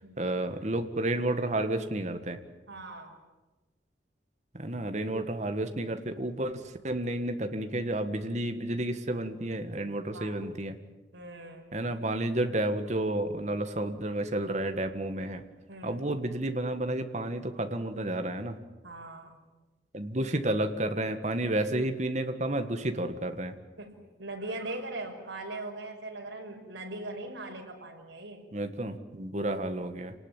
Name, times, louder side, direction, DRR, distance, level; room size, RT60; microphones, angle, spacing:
voice 1, 0.2-2.4 4.5-10.8 11.7-15.4 15.8-18.6 19.9-23.5 28.5-30.1, right 1 dB, 40° right, 7 dB, 1.7 m, -31 dB
voice 2, 2.7-3.2 10.1-10.7 11.1-11.7 15.7-16.1 18.8-19.4 23.8-28.5, right 2 dB, 85° right, 1 dB, 5.6 m, -40 dB
28.0 x 19.5 x 9.2 m, 1.2 s
head